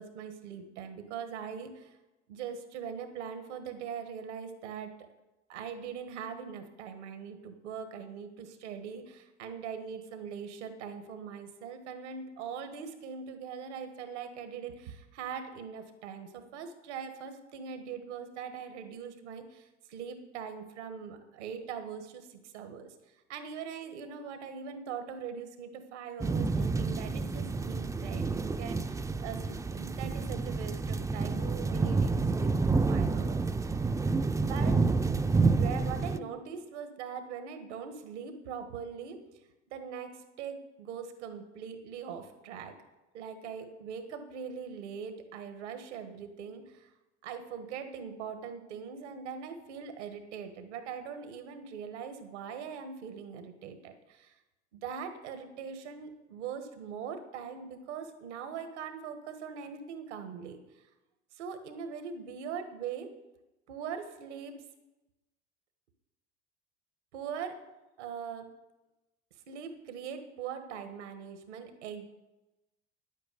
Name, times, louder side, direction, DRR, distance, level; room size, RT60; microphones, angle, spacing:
voice 1, 0.0-2.0 2.3-4.9 5.5-22.9 23.3-33.9 34.4-34.7 35.4-39.2 39.7-42.7 43.1-46.9 47.2-54.3 54.7-60.6 61.3-63.1 63.7-64.6 67.1-67.5 68.0-68.5 69.5-72.1, right 7 dB, 80° right, 7 dB, 1.5 m, -41 dB
sound 1, 26.2-36.2, right 4 dB, 10° right, 0.4 m, -29 dB
10.0 x 8.5 x 6.8 m, 1.0 s
hypercardioid pair, 80°, 34 cm